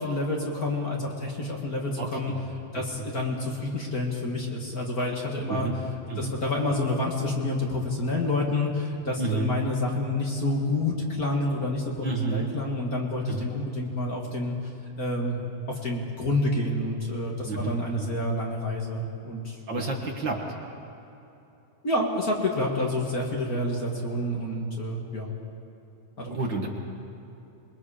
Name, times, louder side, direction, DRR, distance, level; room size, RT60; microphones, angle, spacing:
voice 1, 0.0-2.3 2.7-5.7 6.2-12.0 12.3-14.5 15.0-15.5 15.8-19.9 21.8-25.3 26.2-26.3, left 2 dB, 35° left, -1 dB, 1.7 m, -28 dB
voice 2, 2.0-2.4 3.0-3.1 5.5-5.8 6.1-6.3 9.2-9.6 12.0-12.5 13.2-13.5 17.4-18.1 19.7-20.4 26.3-26.7, right 3 dB, 50° right, 1 dB, 1.5 m, -30 dB
27.0 x 20.5 x 5.0 m, 2.9 s
omnidirectional pair, 4.1 m